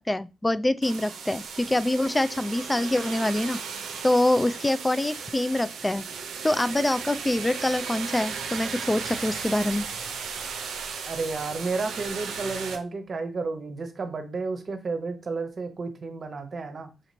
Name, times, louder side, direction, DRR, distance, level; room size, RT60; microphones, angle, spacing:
voice 1, 0.0-3.6 4.0-6.0 6.4-9.9, left 1 dB, 20° left, 0.3 m, -25 dB
sound 1, 0.8-12.8, right 6 dB, 75° right, 0.6 m, -36 dB
voice 2, 11.0-16.9, right 4 dB, 50° right, 0.9 m, -32 dB
5.1 x 2.8 x 2.7 m
hypercardioid pair, 40°, 0 cm